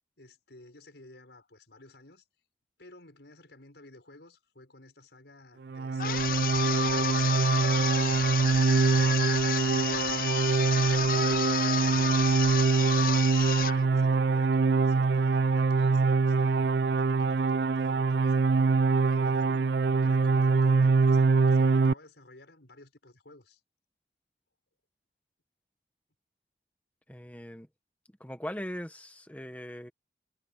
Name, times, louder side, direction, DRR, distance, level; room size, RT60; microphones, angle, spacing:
voice 1, 0.2-2.2 2.8-7.5 7.9-9.9 10.5-13.3 13.6-18.7 19.1-23.6, left 2 dB, 85° left, 5.3 m, -54 dB
sound 1, 5.7-21.9, right 4 dB, 80° right, 0.4 m, -24 dB
sound 2, 6.0-13.8, left 8 dB, 50° left, 0.6 m, -31 dB
voice 2, 27.1-27.7 28.2-29.9, equal, 10° left, 1.3 m, -40 dB
head